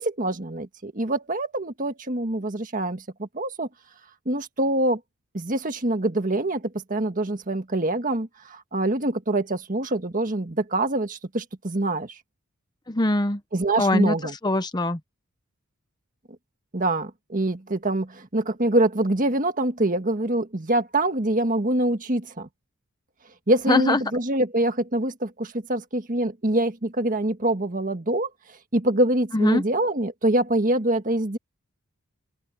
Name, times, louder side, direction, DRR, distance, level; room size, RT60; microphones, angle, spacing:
voice 1, 0.0-3.7 4.2-5.0 5.3-12.1 13.5-14.3 16.7-22.5 23.5-28.3 28.7-31.4, right 1 dB, 35° right, 1.7 m, -25 dB
voice 2, 12.9-13.4 13.8-14.1 14.4-15.0 23.7-24.0 29.3-29.6, left 2 dB, 20° left, 0.8 m, -22 dB
open air
head